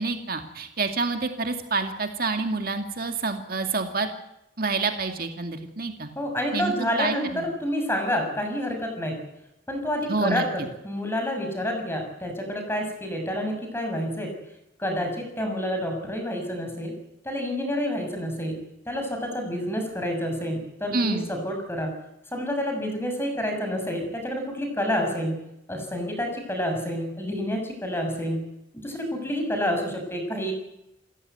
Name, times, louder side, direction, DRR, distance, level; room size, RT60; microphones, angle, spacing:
voice 1, 0.0-4.1 4.6-6.1 6.5-6.7 7.0-7.5 10.1-10.5 20.9-21.3, right 3 dB, 50° right, 5 dB, 2.2 m, -27 dB
voice 2, 6.1-9.2 9.7-10.4 10.8-14.3 14.8-16.9 17.2-21.9 22.3-25.4 25.7-28.5 28.8-30.5, equal, 15° left, 4 dB, 6.5 m, -28 dB
28.5 x 14.5 x 9.3 m, 0.87 s
head